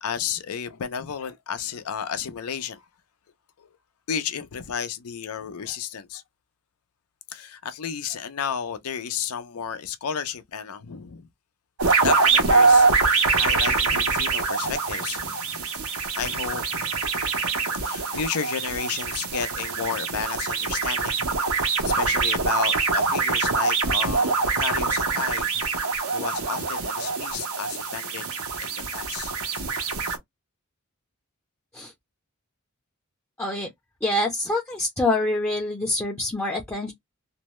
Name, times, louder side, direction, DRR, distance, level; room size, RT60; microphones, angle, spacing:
voice 1, 0.0-2.8 3.6-3.7 4.1-6.2 7.3-11.3 12.0-15.7 16.1-17.0 17.7-28.2 28.6-29.7, left 7 dB, 85° left, 0.5 m, -32 dB
sound 1, 11.8-30.2, right 4 dB, 75° right, 0.8 m, -24 dB
voice 2, 33.4-33.7 34.0-36.9, left 2 dB, 10° left, 0.5 m, -26 dB
2.6 x 2.1 x 3.0 m
head